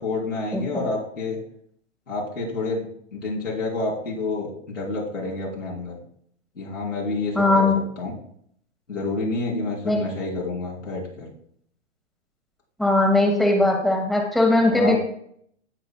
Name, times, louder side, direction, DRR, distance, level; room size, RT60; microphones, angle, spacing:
voice 1, 0.0-1.4 2.1-5.9 6.6-7.7 8.0-8.1 8.9-11.3 14.7-15.0, left 3 dB, 85° left, -4 dB, 3.5 m, -28 dB
voice 2, 0.5-0.8 7.3-7.8 9.8-10.0 12.8-14.9, left 2 dB, ahead, 0 dB, 1.2 m, -19 dB
16.5 x 5.6 x 2.2 m, 0.66 s
figure-of-eight pair, 115°, 36 cm